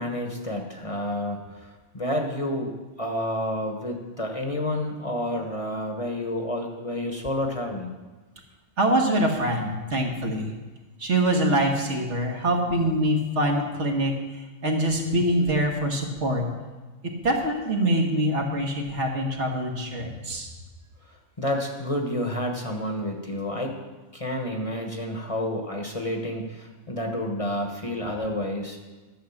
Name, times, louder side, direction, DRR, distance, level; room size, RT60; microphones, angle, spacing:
voice 1, 0.0-2.7 3.0-7.9 21.4-23.7 24.1-28.8, left 1 dB, 30° left, 2 dB, 1.1 m, -29 dB
voice 2, 8.8-10.5 11.0-14.1 14.6-16.5 17.0-20.5, right 1 dB, 70° right, 1 dB, 1.8 m, -24 dB
12.0 x 6.5 x 7.1 m, 1.2 s
omnidirectional pair, 1.3 m